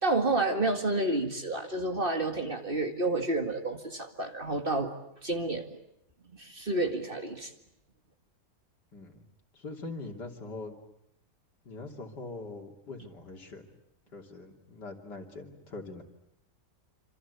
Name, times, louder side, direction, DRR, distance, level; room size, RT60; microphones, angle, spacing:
voice 1, 0.0-4.9 5.2-5.7 6.4-7.5, right 2 dB, 30° right, 5 dB, 2.2 m, -29 dB
voice 2, 8.9-9.3 9.5-10.8 11.7-13.7 14.1-16.0, left 3 dB, 75° left, 3 dB, 3.6 m, -42 dB
26.5 x 26.5 x 8.3 m, 0.79 s
omnidirectional pair, 1.8 m